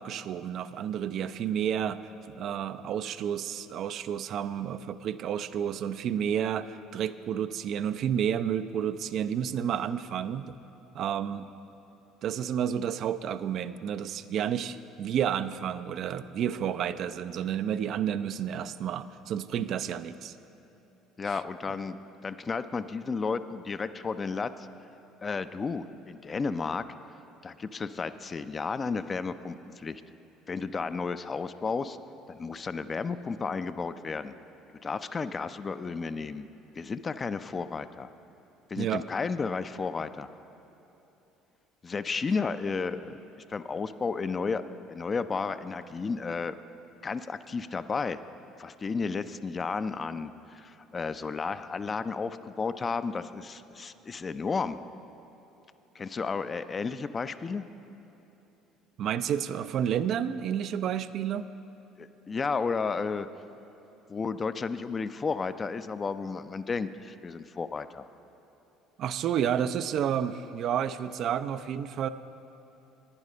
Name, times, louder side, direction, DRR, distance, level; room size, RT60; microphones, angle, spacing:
voice 1, 0.0-2.0 2.3-10.6 10.9-11.5 12.2-20.3 21.2-21.4 38.8-39.0 59.0-61.5 69.0-72.1, right 9 dB, 55° right, 13 dB, 0.3 m, -30 dB
voice 2, 21.2-22.0 22.2-24.7 25.2-26.8 27.4-30.0 30.5-32.0 32.3-34.3 34.8-36.5 36.8-38.1 38.7-40.3 41.8-43.2 43.5-44.6 44.9-46.6 47.0-48.2 48.6-54.8 56.0-57.7 62.0-63.3 64.1-68.1, left 4 dB, 30° left, 12 dB, 0.4 m, -32 dB
9.8 x 9.7 x 5.5 m, 3.0 s
hypercardioid pair, 60°, 0 cm